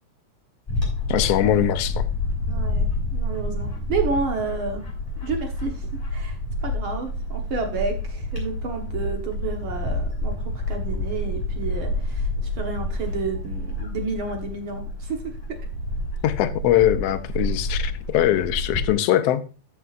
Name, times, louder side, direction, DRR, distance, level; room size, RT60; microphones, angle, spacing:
Bird / Wind, 0.7-18.9, left 1 dB, 10° left, 4.5 m, -28 dB
voice 1, 1.1-2.1 16.2-19.4, left 12 dB, 75° left, 1.5 m, -21 dB
voice 2, 2.5-4.8 5.2-15.4, right 4 dB, 55° right, 1.6 m, -31 dB
13.5 x 6.9 x 2.5 m
omnidirectional pair, 3.5 m